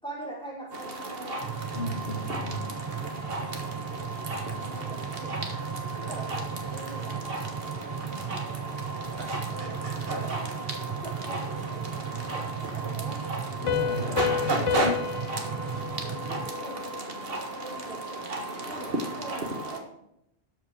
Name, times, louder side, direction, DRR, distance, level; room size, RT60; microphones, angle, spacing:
voice 1, 0.0-1.4 3.0-5.4 5.9-7.4 7.7-8.5 9.1-13.3 14.1-14.9 15.3-18.3 18.7-20.0, right 2 dB, 5° left, -5 dB, 4.4 m, -44 dB
sound 1, 0.7-19.8, right 2 dB, 70° right, 1.8 m, -34 dB
sound 2, 1.4-16.5, right 8 dB, 45° right, 0.4 m, -37 dB
voice 2, 1.7-2.7 13.6-14.8, left 2 dB, 75° left, 1 dB, 1.5 m, -35 dB
Piano, 13.7-17.1, left 7 dB, 50° left, 0.4 m, -31 dB
13.0 x 7.9 x 3.6 m, 0.77 s
omnidirectional pair, 1.0 m